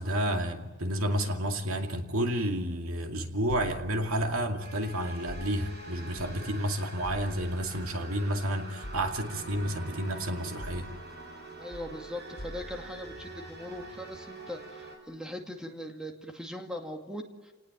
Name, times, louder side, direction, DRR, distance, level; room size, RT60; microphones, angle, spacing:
voice 1, 0.0-10.9, equal, 80° right, 4 dB, 2.4 m, -30 dB
sound 1, 3.5-6.6 7.0-11.4 11.7-14.1, left 1 dB, 70° left, 2.4 m, -47 dB
sound 2, 4.6-15.0, right 2 dB, 50° right, 7.6 m, -45 dB
voice 2, 11.6-17.5, left 1 dB, 5° right, 2 dB, 2.3 m, -40 dB
29.5 x 19.0 x 9.1 m, 1.2 s
head